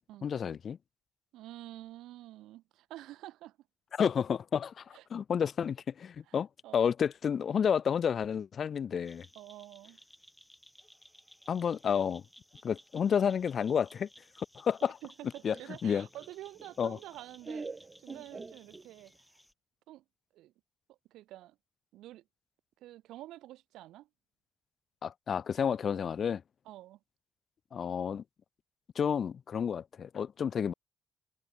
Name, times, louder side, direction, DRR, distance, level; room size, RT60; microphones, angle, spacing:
voice 1, 0.2-0.8 3.9-6.5 6.7-9.3 11.5-12.2 12.6-14.1 14.4-15.0 15.4-15.6 15.8-16.1 16.8-17.0 25.0-26.4 27.7-28.2 29.0-30.7, left 7 dB, 55° left, 2.4 m, -30 dB
voice 2, 1.3-3.6 4.9-5.0 6.3-6.4 6.6-6.9 9.3-10.0 14.8-17.7 18.0-19.1 19.9-20.0 20.3-20.5 20.9-21.6 21.9-22.2 22.8-24.1 26.6-27.0, right 15 dB, 90° right, 4.3 m, -48 dB
sound 1, 9.1-19.5, left 1 dB, 5° left, 7.5 m, -59 dB
Laughter, 15.5-19.2, right 4 dB, 30° right, 3.2 m, -45 dB
cardioid pair, 90°, 0 cm